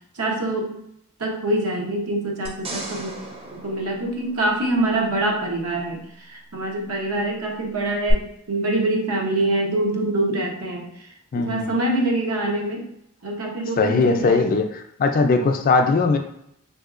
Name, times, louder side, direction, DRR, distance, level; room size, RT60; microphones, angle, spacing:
voice 1, 0.1-0.8 1.2-3.1 3.5-11.1 11.3-12.9 13.2-14.5, right 2 dB, 90° right, -1 dB, 0.8 m, -25 dB
sound 1, 2.5-5.0 8.1-8.2, right 2 dB, 25° right, 0.5 m, -36 dB
voice 2, 11.3-11.7 13.8-16.2, left 3 dB, 40° left, 6 dB, 0.3 m, -20 dB
3.6 x 2.7 x 2.4 m, 0.75 s
head